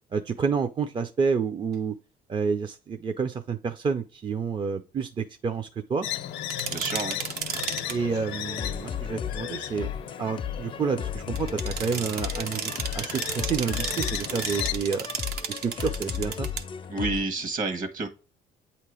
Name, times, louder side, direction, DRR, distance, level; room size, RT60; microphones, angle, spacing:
voice 1, 0.1-2.0 2.3-6.1 7.9-9.9 10.2-16.5, right 5 dB, 30° right, 7 dB, 0.4 m, -29 dB
sound 1, 6.0-14.7, left 11 dB, 85° left, 0.6 m, -36 dB
sound 2, 6.5-8.0 11.3-16.6, right 7 dB, 70° right, 0.8 m, -33 dB
voice 2, 6.6-7.2 16.9-18.1, right 3 dB, 55° right, 8 dB, 1.4 m, -29 dB
sound 3, 7.5-17.3, left 8 dB, 30° left, 0.4 m, -35 dB
8.3 x 2.9 x 4.7 m, 0.33 s
cardioid pair, 110°, 17 cm